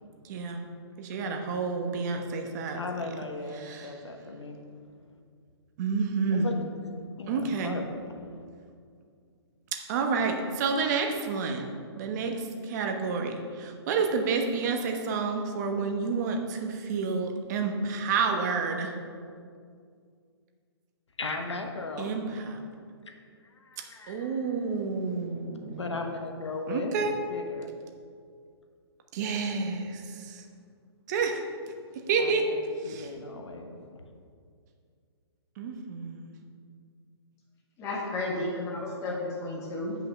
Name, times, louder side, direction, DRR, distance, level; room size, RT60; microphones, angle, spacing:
voice 1, 0.2-0.6 1.0-2.8 3.5-4.0 5.8-6.5 7.3-7.8 9.7-11.7 12.0-19.0 22.0-22.6 24.1-26.0 26.7-27.1 29.1-30.4 31.1-31.4 32.1-32.5 32.8-33.1 35.6-36.3, right 4 dB, 40° right, 4 dB, 1.2 m, -29 dB
voice 2, 2.7-4.7 6.3-6.6 6.9-8.5 21.2-22.1 23.1-23.2 23.5-24.4 25.8-26.9 27.3-27.7 32.1-33.8, left 3 dB, 90° left, 4 dB, 1.1 m, -37 dB
voice 3, 37.8-40.0, left 2 dB, 20° left, -5 dB, 1.9 m, -32 dB
8.9 x 5.8 x 5.9 m, 2.2 s
hypercardioid pair, 140°, 14 cm